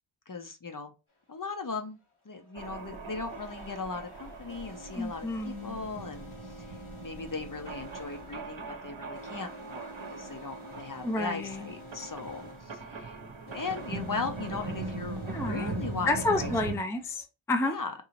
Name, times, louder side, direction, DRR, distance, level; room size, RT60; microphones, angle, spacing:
voice 1, 0.3-0.9 1.3-6.7 7.0-13.2 13.5-16.1 16.4-16.5 17.6-17.9, left 4 dB, 45° left, 0.7 m, -38 dB
sound 1, 1.1-1.2 2.2-17.2, left 1 dB, 80° left, 1.1 m, -49 dB
sound 2, 2.5-16.8, right 3 dB, 70° right, 0.8 m, -40 dB
voice 2, 4.9-5.8 11.0-11.7 12.0-12.1 15.3-15.8 16.1-17.8, left 2 dB, 5° left, 0.4 m, -30 dB
3.9 x 2.7 x 2.9 m
wide cardioid pair, 45°, 48 cm